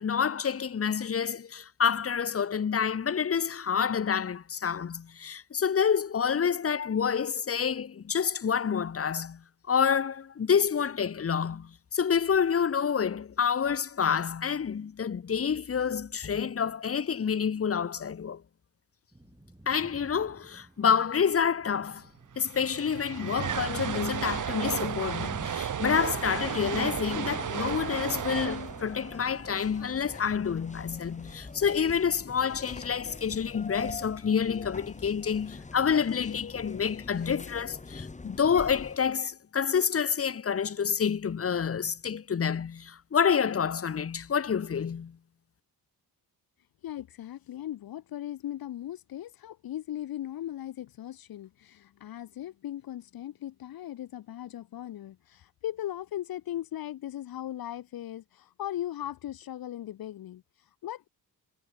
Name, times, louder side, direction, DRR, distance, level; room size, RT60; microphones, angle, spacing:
voice 1, 0.0-18.4 19.7-22.1 22.4-45.2, left 7 dB, 40° left, 1.5 m, -28 dB
sound 1, 19.1-27.5, right 1 dB, 10° right, 3.7 m, -51 dB
sound 2, 21.9-22.0 22.2-30.4, right 8 dB, 55° right, 2.5 m, -34 dB
sound 3, 25.9-39.0, left 3 dB, 20° left, 1.7 m, -44 dB
voice 2, 46.8-61.1, left 12 dB, 70° left, 1.1 m, -38 dB
cardioid pair, 105°, 37 cm